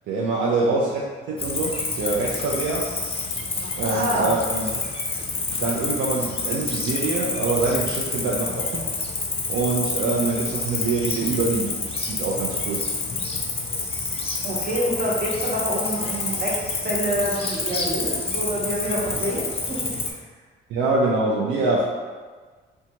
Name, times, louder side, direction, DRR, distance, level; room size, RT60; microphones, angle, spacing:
voice 1, 0.1-2.9 3.7-4.7 5.6-8.9 9.5-11.8 12.1-12.8 20.7-21.8, right 3 dB, 75° right, -4 dB, 0.4 m, -24 dB
Cricket, 1.4-20.1, left 3 dB, 30° left, 0.4 m, -28 dB
voice 2, 3.8-4.3 14.4-16.6 16.8-19.8, right 1 dB, 50° right, -5 dB, 0.8 m, -27 dB
2.6 x 2.2 x 2.8 m, 1.5 s
cardioid pair, 90°, 20 cm